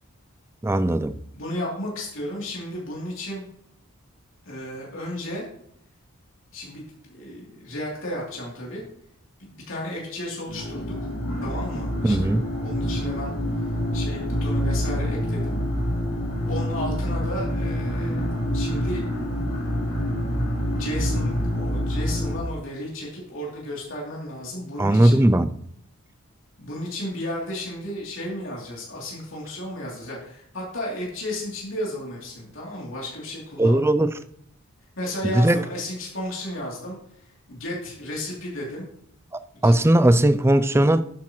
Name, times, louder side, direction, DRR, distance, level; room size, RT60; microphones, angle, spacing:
voice 1, 0.6-1.2 12.0-12.4 24.8-25.5 33.6-34.1 35.2-35.6 39.6-41.0, right 1 dB, 10° right, 0.4 m, -18 dB
voice 2, 1.3-3.4 4.4-5.4 6.5-8.8 9.4-10.9 11.4-12.3 12.6-13.3 13.9-15.6 16.4-19.0 20.7-25.2 26.6-33.9 35.0-38.9 39.5-40.0, left 1 dB, 60° left, 3.0 m, -33 dB
sound 1, 10.5-22.4, equal, 85° left, 3.0 m, -26 dB
12.0 x 8.6 x 3.1 m
head